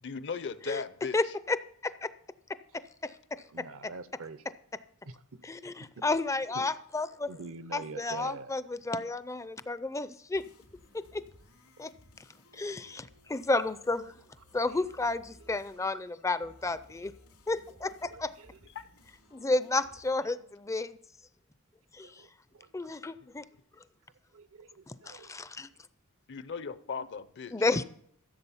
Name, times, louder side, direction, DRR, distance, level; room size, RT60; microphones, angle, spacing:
voice 1, 0.0-1.2 18.8-18.9 26.3-27.7, left 5 dB, 55° left, 0.6 m, -37 dB
voice 2, 1.1-1.6 1.8-2.1 3.0-3.1 5.4-7.3 7.7-10.4 10.9-11.2 11.8-11.9 12.5-14.1 14.5-17.1 17.5-18.3 19.3-21.0 21.9-22.2 22.7-23.4 24.9-25.7 27.5-27.8, left 3 dB, 15° left, 0.4 m, -32 dB
voice 3, 3.5-4.4 5.1-5.2 6.0-6.1 7.3-8.5 17.8-18.5 22.0-22.3 22.5-22.7 24.3-25.4, right 3 dB, 65° right, 0.8 m, -45 dB
sound 1, 10.3-20.1, left 1 dB, 90° left, 3.8 m, -59 dB
15.0 x 7.5 x 5.6 m
head